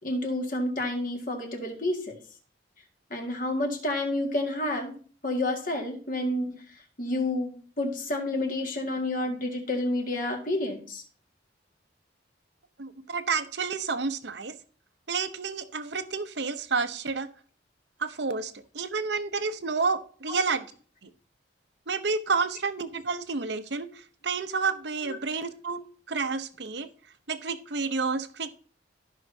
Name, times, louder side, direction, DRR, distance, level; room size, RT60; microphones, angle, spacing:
voice 1, 0.0-2.2 3.1-5.0 5.2-6.5 7.0-11.0 20.3-20.4 25.1-25.2, left 1 dB, 45° left, 3 dB, 1.9 m, -29 dB
voice 2, 12.8-14.5 15.1-17.3 18.0-20.6 21.9-25.8 26.1-26.9 27.3-28.5, right 4 dB, 60° right, 11 dB, 0.8 m, -30 dB
14.0 x 5.7 x 2.7 m, 0.43 s
head